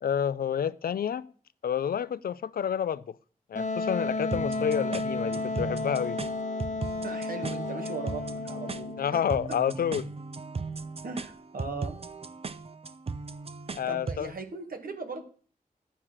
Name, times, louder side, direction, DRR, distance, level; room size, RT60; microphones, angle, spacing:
voice 1, 0.0-1.3 1.6-3.2 3.5-6.2 9.0-10.1 13.7-14.3, left 8 dB, 90° left, 0.4 m, -29 dB
Wind instrument woodwind instrument, 3.5-9.1, left 3 dB, 55° left, 0.9 m, -32 dB
sound 1, 4.3-14.3, right 4 dB, 40° right, 0.6 m, -38 dB
voice 2, 7.0-9.2 9.5-9.6 11.0-12.0 13.9-15.2, right 3 dB, 75° right, 1.7 m, -38 dB
11.5 x 4.8 x 7.4 m
wide cardioid pair, 85°, 15 cm